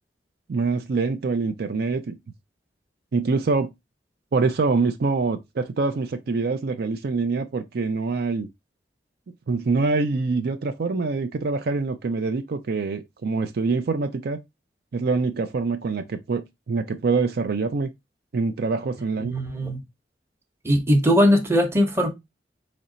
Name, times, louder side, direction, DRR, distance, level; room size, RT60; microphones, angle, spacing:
voice 1, 0.5-2.2 3.1-3.7 4.3-8.5 9.5-14.4 14.9-17.9 18.3-19.3, right 4 dB, 60° right, 0.5 m, -25 dB
voice 2, 19.2-19.8 20.6-22.1, equal, 15° right, 0.9 m, -20 dB
4.3 x 3.2 x 3.8 m
head